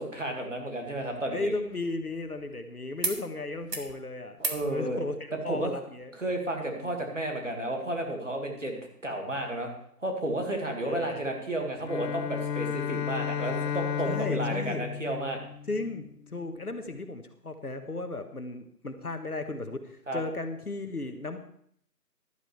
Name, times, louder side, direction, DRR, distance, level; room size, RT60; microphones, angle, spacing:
voice 1, 0.0-1.5 4.4-5.0 5.5-5.7 6.2-9.7 10.0-15.4 20.1-20.2, right 1 dB, 50° right, 2 dB, 2.1 m, -32 dB
sound 1, 0.8-2.6 3.0-3.2 3.5-3.9 4.4-4.7 6.0-6.1, right 2 dB, 80° right, 2.0 m, -37 dB
voice 2, 1.3-4.4 4.6-6.1 6.7-7.0 10.8-11.3 14.1-14.8 15.7-21.4, left 2 dB, 65° left, 7 dB, 1.4 m, -35 dB
Bowed string instrument, 11.8-16.2, left 8 dB, 80° left, 0.6 m, -33 dB
14.0 x 11.5 x 3.3 m, 0.65 s
figure-of-eight pair, 175°, 49 cm